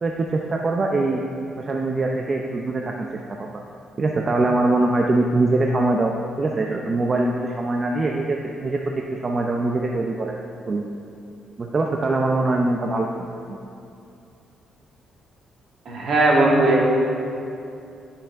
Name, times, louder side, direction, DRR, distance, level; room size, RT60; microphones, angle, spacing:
voice 1, 0.0-1.2 1.6-3.1 3.4-3.6 4.0-6.1 6.4-8.9 9.2-10.4 10.7-10.8 11.6-13.6, right 2 dB, 35° right, 1 dB, 0.6 m, -23 dB
voice 2, 15.9-16.8, right 2 dB, 60° right, -3 dB, 2.2 m, -17 dB
14.5 x 5.9 x 3.6 m, 2.7 s
cardioid pair, 90°, 0 cm